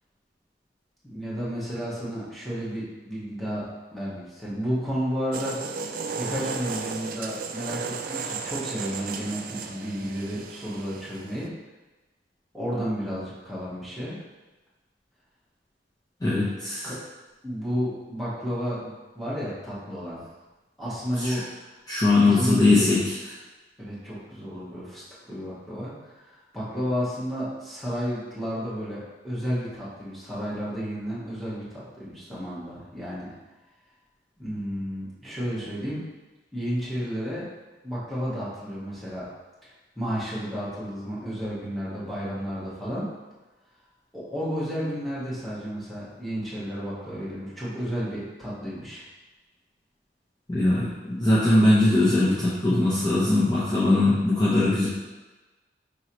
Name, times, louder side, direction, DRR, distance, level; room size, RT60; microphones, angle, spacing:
voice 1, 1.0-3.6 3.9-5.6 6.2-11.5 12.5-14.2 16.8-17.0 17.4-20.2 20.8-21.4 22.1-22.9 23.8-33.3 34.4-36.0 36.5-37.5 37.8-39.3 39.6-43.1 44.1-49.0, equal, ahead, -10 dB, 1.3 m, -32 dB
sound 1, 5.3-11.5, right 5 dB, 50° right, 0.3 m, -35 dB
voice 2, 16.2-16.9 21.2-21.4 21.9-23.2 50.5-54.9, left 2 dB, 20° left, -8 dB, 0.6 m, -21 dB
5.0 x 3.0 x 2.9 m, 1.2 s
head